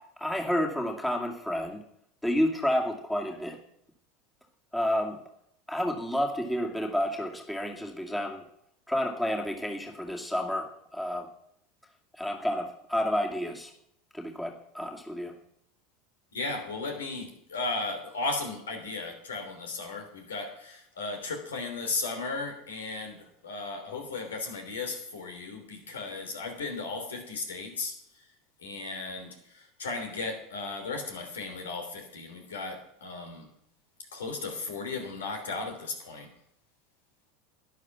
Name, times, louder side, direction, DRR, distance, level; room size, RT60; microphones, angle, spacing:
voice 1, 0.0-1.8 2.2-3.6 4.7-5.2 5.7-8.4 8.9-11.3 12.2-13.7 14.1-15.3, equal, 10° left, 2.2 m, -30 dB
voice 2, 16.3-27.9 28.6-29.3 29.8-33.5 34.1-36.3, left 3 dB, 85° left, 3.1 m, -35 dB
11.5 x 11.0 x 5.9 m
hypercardioid pair, 85°, 0 cm